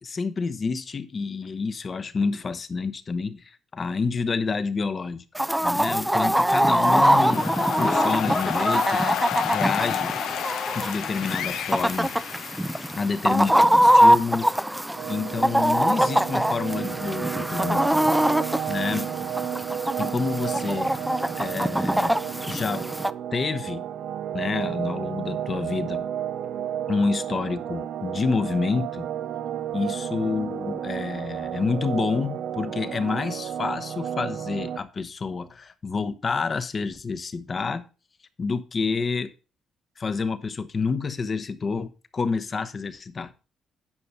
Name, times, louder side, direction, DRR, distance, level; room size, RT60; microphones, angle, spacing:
voice 1, 0.0-5.2 5.6-7.5 7.8-9.0 9.5-10.1 10.7-12.1 13.0-14.6 15.1-18.0 18.7-19.1 20.0-20.9 21.4-22.2 22.5-22.8 23.3-23.8 24.3-26.0 26.9-29.1 29.7-37.8 38.4-39.3 40.0-43.3, left 4 dB, 40° left, 1.0 m, -28 dB
Chicken rooster, 5.4-23.1, equal, 5° right, 0.5 m, -23 dB
sound 1, 6.5-13.4, left 9 dB, 80° left, 0.7 m, -30 dB
sound 2, 15.0-34.8, right 9 dB, 70° right, 0.5 m, -32 dB
9.9 x 5.4 x 5.5 m
cardioid pair, 90°, 0 cm